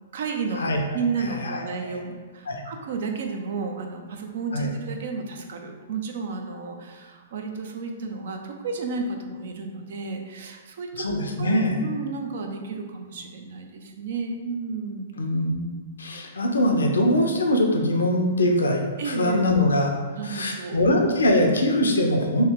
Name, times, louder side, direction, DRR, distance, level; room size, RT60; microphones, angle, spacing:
voice 1, 0.1-0.7 0.9-15.1 19.0-19.5 20.2-20.8, right 4 dB, 65° right, 3 dB, 0.5 m, -32 dB
voice 2, 1.3-1.6 2.5-2.6 4.5-4.7 11.0-11.8 15.2-15.6 16.0-19.9 20.3-22.4, left 1 dB, 85° left, 2 dB, 0.5 m, -22 dB
3.1 x 2.7 x 3.5 m, 1.4 s
hypercardioid pair, 120°, 0 cm